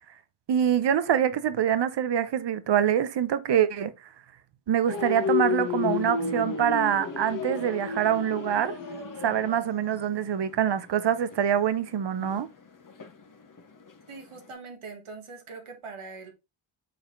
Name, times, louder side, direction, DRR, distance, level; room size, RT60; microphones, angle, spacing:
voice 1, 0.5-3.9 4.7-8.7 9.2-12.5, right 9 dB, 55° right, 0.8 m, -25 dB
sound 1, 4.9-13.9 14.3-14.5, left 5 dB, 40° left, 1.2 m, -32 dB
voice 2, 14.1-16.3, right 4 dB, 80° right, 1.8 m, -42 dB
6.7 x 4.2 x 3.8 m
wide cardioid pair, 90°, 49 cm